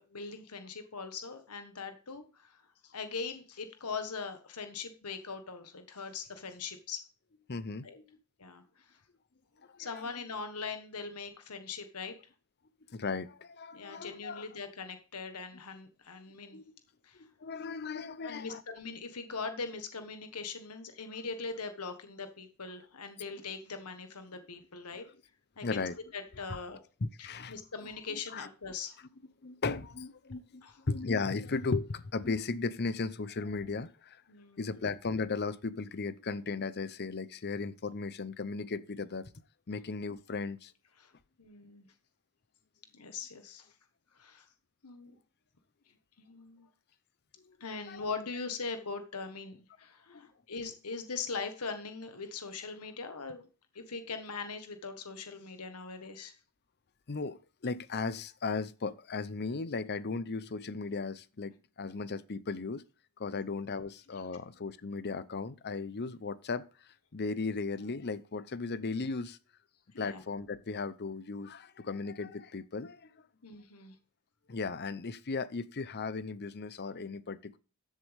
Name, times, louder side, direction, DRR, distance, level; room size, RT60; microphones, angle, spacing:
voice 1, 0.0-7.0 7.8-8.0 8.4-9.0 9.8-12.1 13.7-16.6 17.0-17.2 18.2-25.1 25.6-26.8 27.5-29.0 30.6-30.8 34.3-34.7 39.7-39.8 41.0-41.1 41.4-41.9 42.9-43.7 44.1-44.5 44.8-45.1 46.2-46.7 47.6-53.5 53.7-56.3 63.2-63.4 69.9-70.2 73.4-73.9, left 4 dB, 90° left, 1.5 m, -41 dB
voice 2, 7.5-8.2 9.8-10.0 12.9-14.4 16.5-16.7 17.2-18.6 25.6-26.0 26.5-26.6 27.0-27.6 28.1-28.5 29.4-34.2 34.6-39.3 39.7-40.7 47.4-48.1 50.1-50.3 57.1-62.8 63.2-66.6 67.1-69.4 70.0-73.1 74.5-77.6, left 4 dB, 45° left, 0.7 m, -36 dB
13.5 x 7.5 x 3.5 m
head